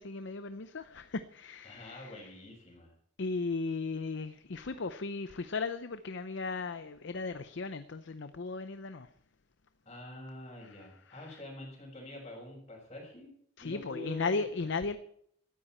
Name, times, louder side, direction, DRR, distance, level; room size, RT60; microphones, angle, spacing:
voice 1, 0.0-2.3 3.2-9.1 10.6-10.8 11.1-11.4 13.6-15.0, left 4 dB, 60° left, 11 dB, 0.6 m, -36 dB
voice 2, 1.6-2.9 9.8-13.3 13.6-14.4, left 2 dB, 30° left, -7 dB, 5.2 m, -46 dB
17.5 x 13.0 x 4.3 m, 0.69 s
head